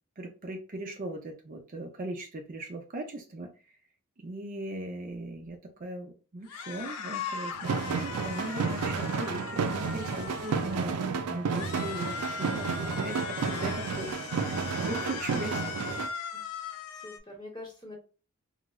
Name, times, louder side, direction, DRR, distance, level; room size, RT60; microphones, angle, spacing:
voice 1, 0.2-3.5 4.2-14.1 14.5-15.6, right 1 dB, 40° right, 3 dB, 0.5 m, -39 dB
sound 1, 6.5-11.0 11.5-17.2, left 6 dB, 85° left, 0.4 m, -39 dB
sound 2, 7.5-16.1, right 5 dB, 90° right, 0.4 m, -32 dB
voice 2, 16.3-18.0, left 2 dB, 20° left, -1 dB, 0.9 m, -47 dB
4.7 x 2.0 x 2.3 m, 0.35 s
head